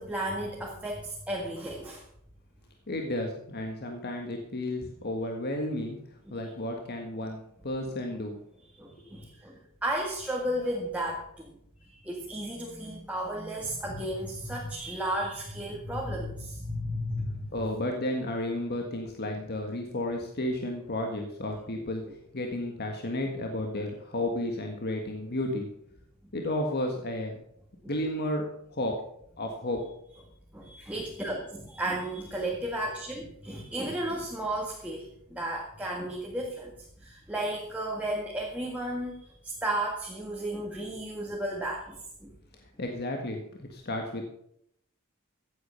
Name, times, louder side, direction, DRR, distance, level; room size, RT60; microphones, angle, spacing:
voice 1, 0.0-2.0 6.3-6.4 8.8-11.5 11.8-17.5 26.2-26.3 27.8-27.9 30.5-42.3, right 1 dB, 5° right, -2 dB, 1.8 m, -34 dB
voice 2, 2.9-6.0 6.3-8.4 17.5-22.0 22.3-25.7 26.3-27.4 27.9-29.0 29.4-29.9 42.8-44.2, left 1 dB, 45° left, 2 dB, 1.6 m, -32 dB
15.5 x 8.4 x 5.7 m, 0.72 s
head